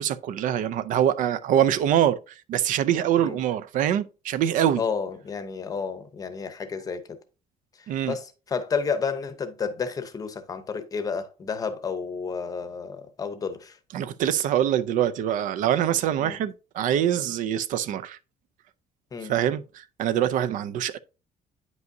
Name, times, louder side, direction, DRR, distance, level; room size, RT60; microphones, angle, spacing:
voice 1, 0.0-2.2 2.5-4.8 7.9-8.1 13.9-18.2 19.3-21.0, right 10 dB, 60° right, 0.4 m, -24 dB
voice 2, 4.8-7.2 7.8-13.8 16.2-16.4 19.1-19.3, left 5 dB, 25° left, 0.7 m, -31 dB
9.2 x 5.4 x 2.6 m
cardioid pair, 180°, 15 cm